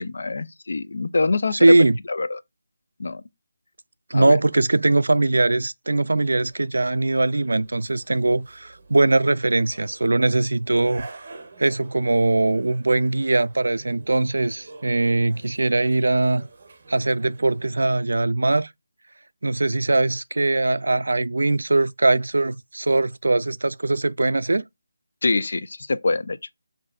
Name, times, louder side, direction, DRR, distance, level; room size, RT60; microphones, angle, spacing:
voice 1, 0.0-1.8 2.1-2.4 3.0-3.2 4.1-4.4 25.2-26.4, left 3 dB, 55° left, 0.4 m, -24 dB
voice 2, 1.5-2.0 4.1-11.1 11.6-16.5 16.9-18.7 19.4-24.6, right 2 dB, 80° right, 0.3 m, -21 dB
sound 1, 6.4-17.7, right 3 dB, 30° right, 0.7 m, -48 dB
5.4 x 2.6 x 2.3 m
figure-of-eight pair, 175°, 0 cm